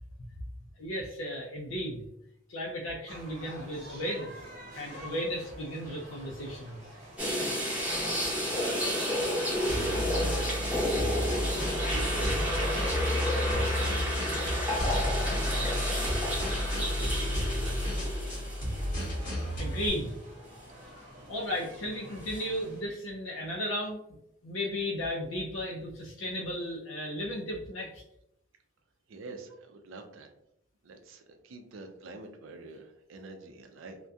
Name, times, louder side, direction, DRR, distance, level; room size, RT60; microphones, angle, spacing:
voice 1, 0.8-2.0 2.5-4.5 4.7-6.8 7.3-7.5 19.6-20.1 21.3-24.0 24.4-28.0, equal, 70° left, -3 dB, 0.4 m, -35 dB
sound 1, 3.1-22.8, equal, 45° right, 1.0 m, -49 dB
sound 2, 7.2-19.4 19.8-19.9 22.3-22.4, equal, 5° right, 0.7 m, -31 dB
voice 2, 8.6-9.2 10.2-10.7 11.8-12.9 13.4-14.2 14.8-18.0 20.9-21.2 29.1-30.3 30.8-34.0, right 3 dB, 70° right, 5 dB, 0.4 m, -47 dB
sound 3, 9.7-19.9, left 1 dB, 40° left, 1.0 m, -32 dB
2.3 x 2.1 x 2.6 m, 0.79 s
head